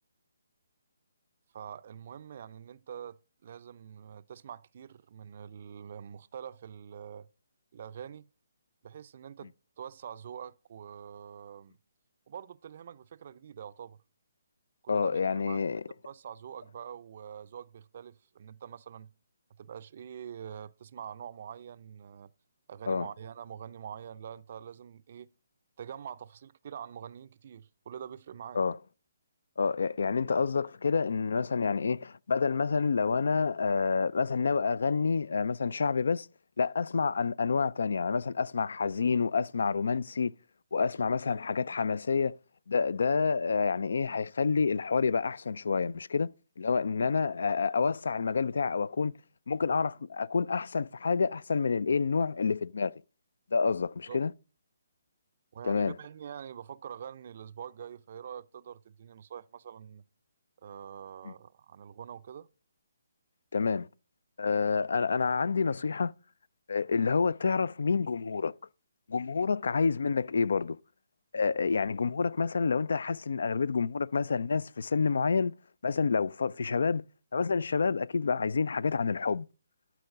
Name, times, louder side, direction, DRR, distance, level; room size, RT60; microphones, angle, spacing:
voice 1, 1.5-7.3 7.7-8.3 8.8-11.8 12.3-14.0 14.8-19.1 19.6-22.3 22.7-25.3 25.8-28.6 47.0-47.3 54.1-54.2 55.5-60.0 60.6-62.5, right 8 dB, 50° right, 0.4 m, -45 dB
voice 2, 14.9-15.8 22.9-23.1 28.5-28.8 29.6-36.3 36.6-40.3 40.7-42.4 42.7-46.3 46.6-49.1 49.5-52.9 53.5-54.3 55.6-56.0 61.2-61.3 63.5-63.9 64.4-66.1 66.7-68.5 69.1-70.8 71.3-75.5 75.8-77.0 77.3-79.5, left 5 dB, 65° left, 0.3 m, -28 dB
11.5 x 4.6 x 3.6 m
figure-of-eight pair, 145°, 0 cm